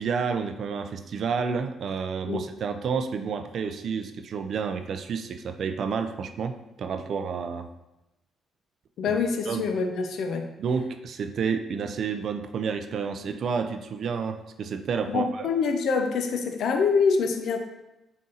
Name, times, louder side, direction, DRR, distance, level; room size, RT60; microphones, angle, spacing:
voice 1, 0.0-7.7 9.1-9.2 9.5-9.7 10.6-15.5, right 6 dB, 60° right, 8 dB, 0.3 m, -30 dB
voice 2, 9.0-10.5 15.1-17.6, left 5 dB, 70° left, 5 dB, 0.5 m, -25 dB
4.1 x 2.6 x 3.8 m, 0.93 s
cardioid pair, 90°, 0 cm